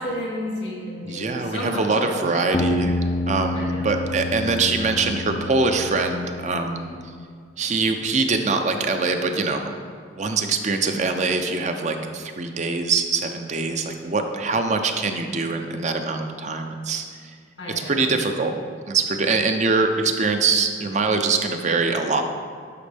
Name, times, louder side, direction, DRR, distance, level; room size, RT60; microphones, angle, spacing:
voice 1, 0.0-2.5 3.5-3.9 17.6-18.1, equal, 90° left, -2 dB, 2.2 m, -32 dB
voice 2, 1.0-3.0 3.3-6.9 7.6-9.7 10.1-17.3 17.9-18.5 18.9-22.2, right 3 dB, 40° right, 6 dB, 0.6 m, -23 dB
sound 1, 2.5-7.2, left 2 dB, 25° left, 0.4 m, -28 dB
11.5 x 5.2 x 3.4 m, 2.1 s
head